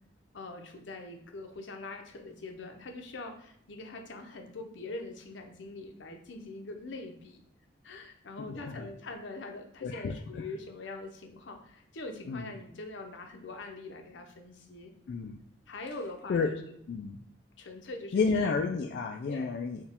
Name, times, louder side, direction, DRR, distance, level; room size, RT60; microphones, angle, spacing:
voice 1, 0.3-7.4 7.8-14.9 15.7-16.8 17.6-18.4 19.3-19.5, left 2 dB, 80° left, 4 dB, 0.7 m, -43 dB
voice 2, 8.5-8.9 9.8-10.1 12.3-12.5 15.1-15.4 16.3-16.5 16.9-17.2 18.1-19.8, left 4 dB, 60° left, 3 dB, 0.3 m, -30 dB
4.5 x 2.3 x 3.5 m, 0.70 s
head